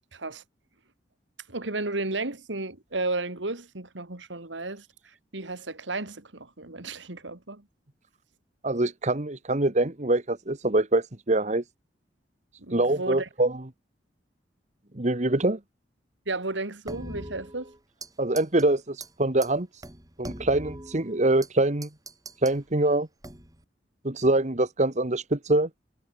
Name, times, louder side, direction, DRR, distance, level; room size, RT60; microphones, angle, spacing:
voice 1, 0.1-0.4 1.5-4.9 5.3-7.6 12.6-13.3 16.3-17.7, right 2 dB, 90° right, 2.8 m, -33 dB
voice 2, 8.6-11.6 12.7-13.6 14.9-15.6 18.2-19.7 20.2-21.9 22.4-23.1 24.0-25.7, right 2 dB, 40° right, 1.6 m, -24 dB
sound 1, 16.9-18.1 18.4-18.6 19.0-19.1 19.4-19.5 19.8-21.5 21.8-22.6 23.2-23.6, right 2 dB, 20° right, 5.1 m, -41 dB
head